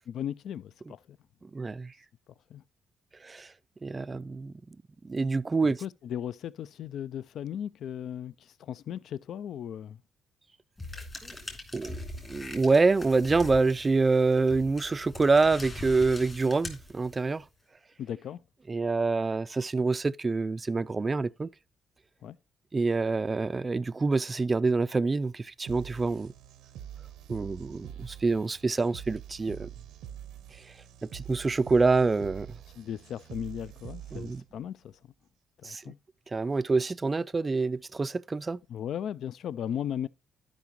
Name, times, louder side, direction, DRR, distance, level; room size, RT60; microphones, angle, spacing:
voice 1, 0.1-1.2 2.5-2.6 5.6-10.0 18.0-18.4 22.2-22.4 32.8-35.0 35.6-36.0 38.7-40.1, left 9 dB, 70° left, 0.3 m, -37 dB
voice 2, 1.4-1.9 3.2-3.5 3.8-4.5 5.0-5.8 11.2-11.4 11.7-17.4 18.7-21.5 22.7-26.3 27.3-29.7 30.5-30.6 31.0-32.5 34.1-34.4 35.6-35.8 36.3-38.6, right 3 dB, 25° right, 0.3 m, -26 dB
sound 1, 10.8-17.4, left 2 dB, 25° left, 2.5 m, -42 dB
sound 2, 25.7-34.7, right 10 dB, 90° right, 0.6 m, -45 dB
12.0 x 5.1 x 3.0 m
cardioid pair, 90°, 0 cm